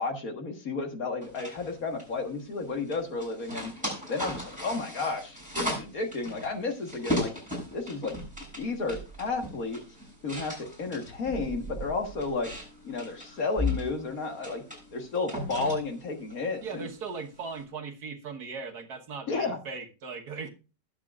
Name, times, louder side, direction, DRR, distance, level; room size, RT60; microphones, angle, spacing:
voice 1, 0.0-3.7 4.1-7.3 7.7-8.1 8.6-9.8 10.2-12.5 12.8-14.6 14.9-16.9 19.3-19.6, left 3 dB, 55° left, 4 dB, 1.9 m, -32 dB
sound 1, 1.2-17.6, left 1 dB, 5° right, 7.3 m, -37 dB
voice 2, 16.6-20.5, right 5 dB, 65° right, 5 dB, 1.7 m, -38 dB
19.5 x 7.5 x 2.4 m, 0.32 s
omnidirectional pair, 1.9 m